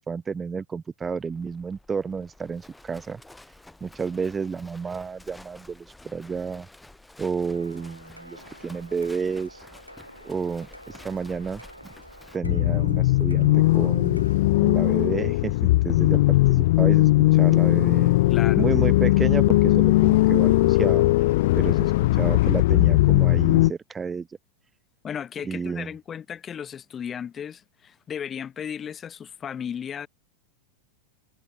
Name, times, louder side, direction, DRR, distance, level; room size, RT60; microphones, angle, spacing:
voice 1, 0.1-3.2 3.8-6.7 7.2-9.6 10.2-11.6 12.3-14.3 14.6-15.6 15.8-18.1 18.6-21.0 21.5-24.4 25.4-25.9, right 5 dB, 15° right, 0.8 m, -31 dB
Livestock farm animals working animals, 1.0-12.4, left 2 dB, 5° left, 3.2 m, -50 dB
sound 1, 7.5-14.4, equal, 90° left, 3.2 m, -48 dB
sound 2, 12.4-23.7, left 18 dB, 50° left, 0.5 m, -19 dB
voice 2, 18.3-18.7 25.0-30.1, left 8 dB, 25° left, 1.6 m, -35 dB
figure-of-eight pair, 90°, 0 cm